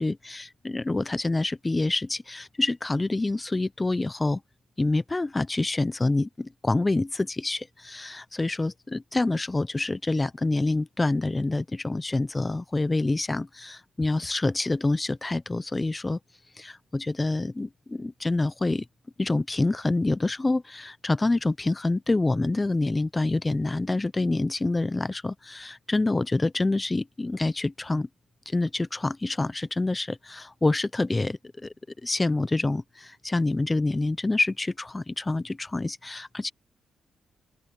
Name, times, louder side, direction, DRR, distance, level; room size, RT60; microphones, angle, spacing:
voice 1, 0.0-4.4 4.8-16.2 16.6-18.9 19.2-28.1 28.5-31.7 32.0-36.5, left 2 dB, 20° left, 0.6 m, -27 dB
open air
cardioid pair, 70°, 0 cm